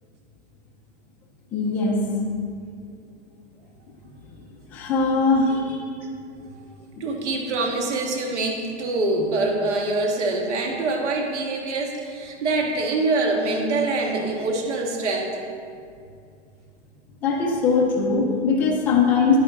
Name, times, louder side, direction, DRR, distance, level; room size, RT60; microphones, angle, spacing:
voice 1, 1.5-2.0 4.7-5.9 7.0-7.1 17.2-19.4, left 4 dB, 5° left, -3 dB, 0.4 m, -21 dB
voice 2, 6.4-15.5, right 2 dB, 75° right, 2 dB, 1.7 m, -25 dB
10.5 x 9.1 x 3.7 m, 2.3 s
hypercardioid pair, 160°, 35 cm